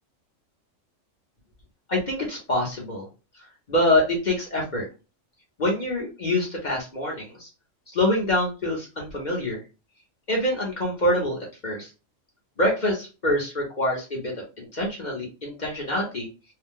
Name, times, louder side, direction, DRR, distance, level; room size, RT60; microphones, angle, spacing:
voice 1, 1.9-3.1 3.7-4.9 5.6-7.5 7.9-9.6 10.3-11.9 12.6-16.3, left 1 dB, 40° left, -2 dB, 0.8 m, -25 dB
2.6 x 2.1 x 3.5 m, 0.30 s
omnidirectional pair, 1.4 m